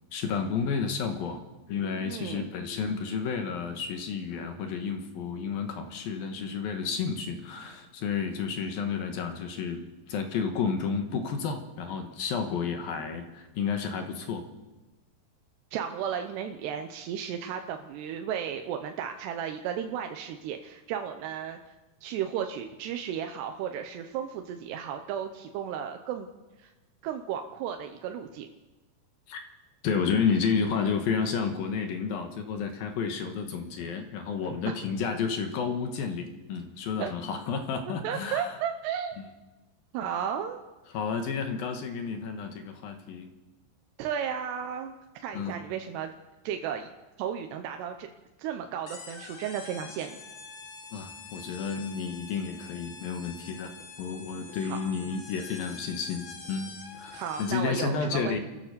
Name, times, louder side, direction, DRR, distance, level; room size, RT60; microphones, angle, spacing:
voice 1, 0.1-1.4 1.7-14.5 29.3-29.4 29.8-38.6 40.9-43.3 45.3-45.6 50.9-53.7 54.0-58.4, left 6 dB, 70° left, 5 dB, 3.0 m, -31 dB
voice 2, 2.0-2.5 15.7-21.6 22.0-26.3 26.6-26.7 27.0-28.5 37.0-37.1 38.0-39.2 39.9-40.6 44.0-46.1 46.4-46.9 47.2-48.1 48.4-50.2 54.6-54.8 57.1-58.4, right 8 dB, 90° right, 5 dB, 3.1 m, -34 dB
sound 1, 48.9-57.8, left 4 dB, 45° left, 1.6 m, -46 dB
27.5 x 14.0 x 6.9 m, 1.1 s
omnidirectional pair, 4.7 m